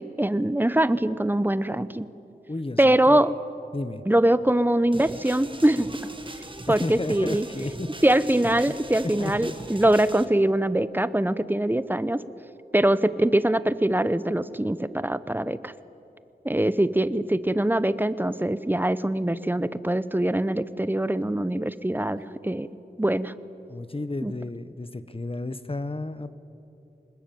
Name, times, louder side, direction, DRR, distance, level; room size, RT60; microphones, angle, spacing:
voice 1, 0.0-2.1 2.8-3.3 4.1-5.9 6.7-7.5 8.0-12.2 12.7-15.7 16.4-22.7 23.0-23.3 24.2-24.3, right 1 dB, 10° right, 15 dB, 0.8 m, -23 dB
voice 2, 2.5-3.2 3.7-4.0 6.7-7.9 8.7-8.8 9.0-9.5 23.7-26.3, left 2 dB, 35° left, 12 dB, 1.2 m, -32 dB
sound 1, 4.9-10.3, right 2 dB, 30° right, 1.7 m, -40 dB
25.5 x 20.5 x 9.2 m, 2.9 s
wide cardioid pair, 75°, 17 cm